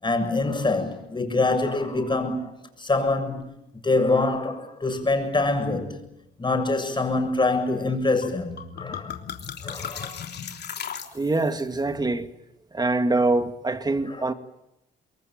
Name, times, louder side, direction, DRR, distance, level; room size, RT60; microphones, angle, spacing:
voice 1, 0.0-2.5 2.8-3.4 3.7-6.0 6.4-9.1 9.6-10.2 14.1-14.3, left 3 dB, 25° left, 7.4 m, -25 dB
sound 1, 8.2-8.3 8.6-11.6, left 7 dB, 55° left, 3.3 m, -36 dB
voice 2, 11.1-12.3 12.7-14.3, right 2 dB, 20° right, 2.2 m, -24 dB
26.5 x 22.0 x 9.1 m
cardioid pair, 90°, 20 cm